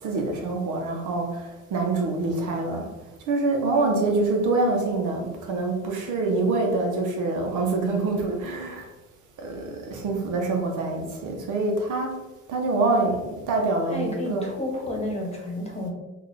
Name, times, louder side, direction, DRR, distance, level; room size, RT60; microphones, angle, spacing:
voice 1, 0.0-2.9 3.3-8.9 9.4-12.1 12.5-14.5, right 3 dB, 75° right, 2 dB, 0.8 m, -25 dB
voice 2, 13.9-15.9, left 1 dB, 20° left, -1 dB, 1.1 m, -31 dB
3.7 x 2.5 x 3.2 m, 1.1 s
cardioid pair, 85°, 31 cm